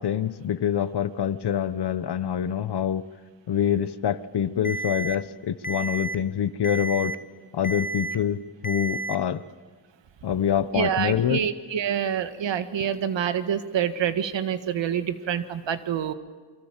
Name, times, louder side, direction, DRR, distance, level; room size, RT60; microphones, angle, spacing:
voice 1, 0.0-3.0 3.5-7.2 7.5-9.4 10.2-11.4, left 9 dB, 65° left, 1.1 m, -26 dB
Alarm, 4.6-5.1 5.6-6.1 6.6-7.1 7.6-8.1 8.6-9.1, right 2 dB, 20° left, 1.2 m, -31 dB
voice 2, 10.7-16.1, right 8 dB, 85° right, 1.7 m, -27 dB
27.5 x 24.5 x 7.5 m
wide cardioid pair, 115°, 43 cm